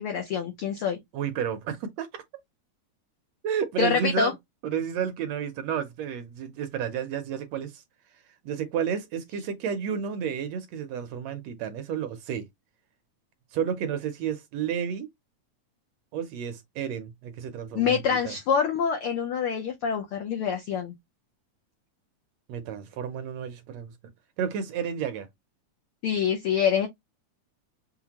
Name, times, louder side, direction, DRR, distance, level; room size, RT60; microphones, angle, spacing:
voice 1, 0.0-1.0 3.8-4.3 17.7-20.9 26.0-26.9, left 7 dB, 80° left, 1.2 m, -26 dB
voice 2, 1.1-2.1 3.4-4.3 4.6-7.8 8.4-12.5 13.5-15.1 16.1-18.3 22.5-23.9 24.4-25.3, right 8 dB, 75° right, 1.7 m, -31 dB
5.9 x 2.1 x 2.8 m
omnidirectional pair, 3.4 m